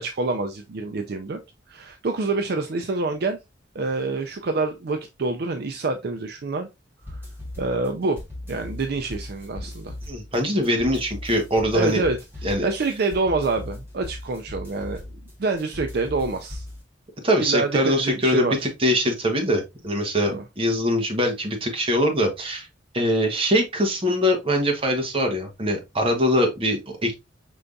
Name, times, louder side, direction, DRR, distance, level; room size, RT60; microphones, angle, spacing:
voice 1, 0.0-1.4 1.7-3.4 3.7-6.7 7.1-7.2 7.6-8.2 8.5-10.0 11.7-15.0 15.4-16.6 17.4-18.7 20.2-20.4, right 3 dB, 55° right, 0.4 m, -26 dB
sound 1, 7.0-16.8, left 1 dB, 10° right, 1.6 m, -38 dB
voice 2, 10.1-12.0 12.4-12.7 17.2-22.7 22.9-27.1, equal, 30° right, 1.2 m, -22 dB
5.3 x 3.4 x 2.5 m
head